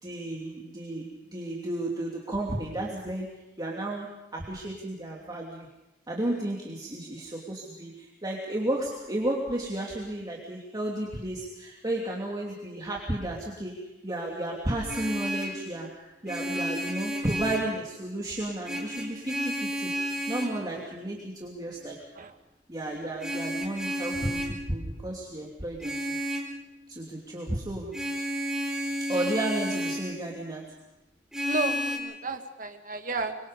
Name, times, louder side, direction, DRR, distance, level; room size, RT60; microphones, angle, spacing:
voice 1, 0.0-3.3 3.6-5.7 6.1-19.9 20.3-22.0 22.7-26.2 26.9-28.0 29.1-30.7, right 1 dB, 25° right, -2 dB, 2.8 m, -33 dB
Vehicle horn car horn honking, 14.7-15.6 16.3-17.7 18.6-20.6 23.2-24.6 25.8-26.5 27.9-30.1 31.3-32.0, equal, 5° right, 4.4 m, -31 dB
voice 2, 31.4-33.4, right 3 dB, 50° right, 6 dB, 1.9 m, -32 dB
25.0 x 24.0 x 5.2 m, 0.99 s
head